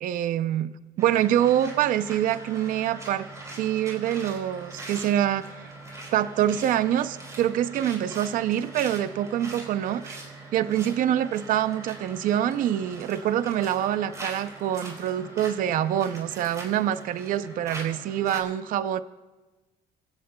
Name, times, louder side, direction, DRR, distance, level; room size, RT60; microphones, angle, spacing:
voice 1, 0.0-3.3 3.6-5.7 6.1-10.2 10.5-19.0, right 11 dB, 60° right, 13 dB, 0.5 m, -25 dB
sound 1, 1.0-18.4, right 2 dB, 20° right, 3.7 m, -42 dB
24.5 x 16.0 x 2.2 m, 1.2 s
cardioid pair, 125°, 16 cm